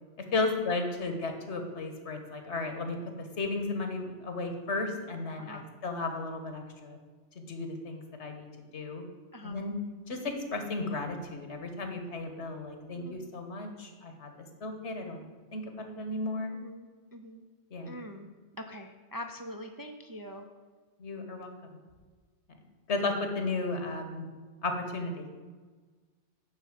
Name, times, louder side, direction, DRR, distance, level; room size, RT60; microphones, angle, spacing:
voice 1, 0.3-7.0 7.3-8.5 8.7-9.0 9.4-9.8 10.1-14.3 14.6-15.3 15.5-16.5 17.7-17.9 21.0-21.5 22.9-24.3 24.6-25.3, left 3 dB, 75° left, 5 dB, 1.5 m, -34 dB
voice 2, 12.9-13.4 16.5-17.4 17.9-18.3 18.6-20.5, left 1 dB, 35° right, 4 dB, 0.3 m, -44 dB
9.7 x 4.1 x 7.5 m, 1.4 s
omnidirectional pair, 1.2 m